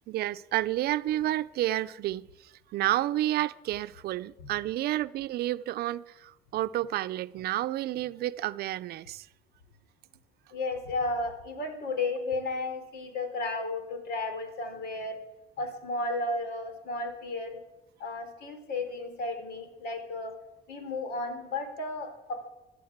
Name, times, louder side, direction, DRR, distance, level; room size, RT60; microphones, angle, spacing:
voice 1, 0.1-2.3 2.7-9.3, right 14 dB, 70° right, 0.6 m, -30 dB
voice 2, 10.5-15.2 15.6-17.6 18.0-20.3 20.7-22.4, left 2 dB, 75° left, 3.8 m, -33 dB
16.5 x 11.5 x 7.4 m
cardioid pair, 110°, 17 cm